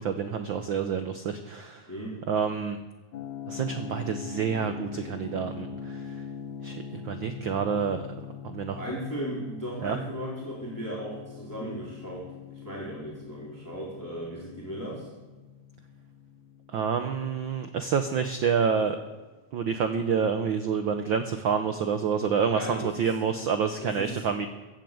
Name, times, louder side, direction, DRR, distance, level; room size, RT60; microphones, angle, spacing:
voice 1, 0.0-1.9 2.3-2.8 3.5-6.1 6.6-8.0 8.4-8.8 9.8-10.0 16.7-19.0 19.5-24.5, right 6 dB, 80° right, 7 dB, 1.1 m, -28 dB
voice 2, 1.9-2.2 8.8-12.3 12.5-15.1 22.5-23.1 23.8-24.2, right 1 dB, 5° left, -6 dB, 3.6 m, -36 dB
sound 1, 3.1-17.9, left 7 dB, 80° left, 2.6 m, -42 dB
16.0 x 9.1 x 7.8 m, 1.2 s
omnidirectional pair, 3.3 m